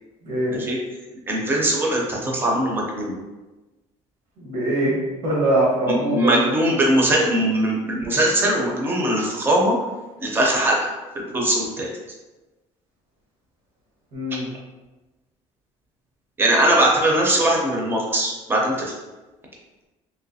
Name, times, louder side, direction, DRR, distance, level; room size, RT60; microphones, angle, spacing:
voice 1, 0.2-0.6 4.4-4.9 5.2-6.5 14.1-14.5, right 1 dB, 75° right, -6 dB, 1.2 m, -22 dB
voice 2, 1.3-3.2 5.9-9.8 10.2-11.9 16.4-18.9, right 1 dB, 15° right, -2 dB, 0.5 m, -21 dB
3.1 x 2.9 x 2.6 m, 1.1 s
cardioid pair, 170°, 13 cm